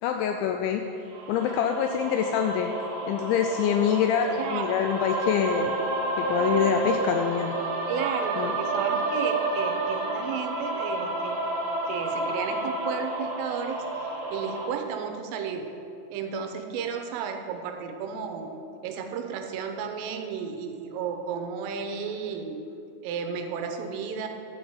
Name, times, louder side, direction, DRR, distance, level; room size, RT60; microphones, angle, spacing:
voice 1, 0.0-0.9 1.3-2.7 3.1-5.7 6.2-7.6 8.4-8.5, left 8 dB, 85° left, 5 dB, 2.6 m, -25 dB
sound 1, 1.1-14.7, right 2 dB, 65° right, 2.3 m, -30 dB
voice 2, 4.3-4.7 7.9-11.4 11.8-15.7 16.1-18.5 18.8-22.6 23.0-24.3, right 6 dB, 90° right, 5 dB, 3.4 m, -33 dB
10.5 x 6.1 x 7.9 m, 2.7 s
omnidirectional pair, 5.8 m